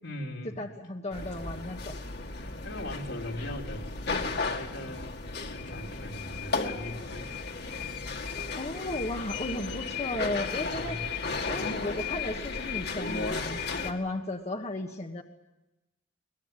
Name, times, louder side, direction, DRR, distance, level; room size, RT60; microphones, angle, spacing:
voice 1, 0.0-0.6 2.0-2.1 2.4-5.1 5.4-7.6 8.8-9.1 10.5-11.0, left 1 dB, 75° left, 0 dB, 3.7 m, -41 dB
voice 2, 0.6-1.9 8.6-11.0 11.5-15.2, left 1 dB, 35° left, 3 dB, 1.4 m, -35 dB
sound 1, 1.1-13.9, left 4 dB, 55° left, 2.2 m, -34 dB
22.5 x 21.0 x 9.0 m, 0.98 s
head